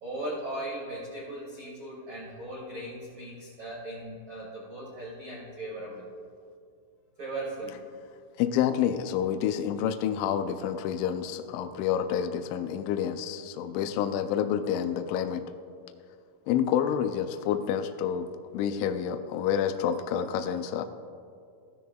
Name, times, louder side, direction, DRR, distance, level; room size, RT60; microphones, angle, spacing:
voice 1, 0.0-6.0 7.2-7.8, right 1 dB, 60° right, -7 dB, 1.3 m, -38 dB
voice 2, 8.4-15.4 16.5-20.9, left 9 dB, 85° left, 8 dB, 2.8 m, -28 dB
15.0 x 13.0 x 2.3 m, 2.3 s
omnidirectional pair, 5.6 m